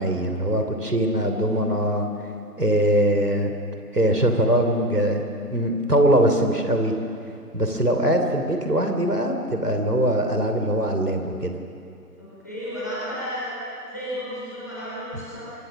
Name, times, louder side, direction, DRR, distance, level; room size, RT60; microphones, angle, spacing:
voice 1, 0.0-2.1 2.6-3.5 3.9-5.2 5.5-6.9 7.5-11.5, right 1 dB, 70° right, 5 dB, 3.2 m, -22 dB
voice 2, 12.2-13.5 13.9-15.4, equal, 10° left, -10 dB, 3.3 m, -33 dB
24.5 x 21.5 x 6.3 m, 2.5 s
figure-of-eight pair, 170°, 49 cm